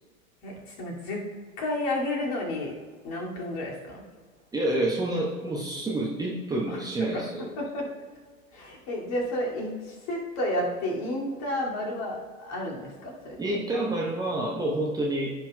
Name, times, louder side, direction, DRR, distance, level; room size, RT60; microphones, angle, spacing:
voice 1, 0.4-1.2 1.6-2.7 3.0-4.0 6.7-6.8 7.1-7.9 8.5-13.6, left 1 dB, 40° left, -2 dB, 2.4 m, -31 dB
voice 2, 4.5-7.5 13.4-15.3, right 1 dB, 10° right, -3 dB, 0.9 m, -28 dB
15.5 x 5.8 x 2.2 m, 1.5 s
figure-of-eight pair, 95°, 41 cm